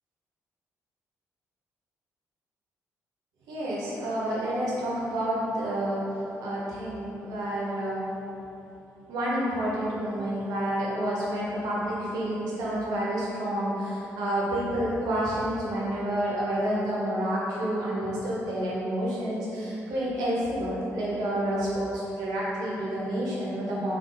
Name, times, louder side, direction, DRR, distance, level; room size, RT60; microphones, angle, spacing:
voice 1, 3.5-6.0 6.4-8.1 9.1-24.0, right 1 dB, 85° right, -7 dB, 0.7 m, -29 dB
3.5 x 2.3 x 2.5 m, 2.9 s
supercardioid pair, 60°, 7 cm